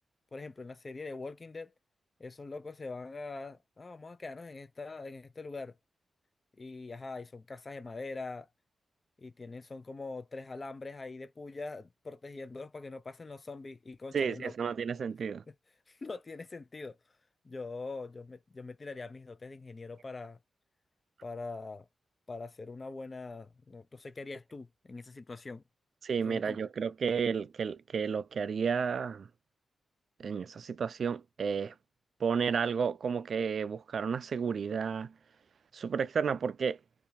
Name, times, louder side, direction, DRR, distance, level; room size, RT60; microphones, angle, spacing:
voice 1, 0.3-1.7 2.2-5.7 6.6-8.5 9.2-14.5 15.9-17.0 17.4-20.4 21.2-21.9 22.3-25.6 26.2-26.6, left 3 dB, 35° left, 0.4 m, -43 dB
voice 2, 14.1-15.4 26.0-29.3 30.2-31.7 32.2-35.1 35.7-36.8, right 6 dB, 65° right, 0.3 m, -32 dB
2.7 x 2.3 x 2.6 m
cardioid pair, 80°, 0 cm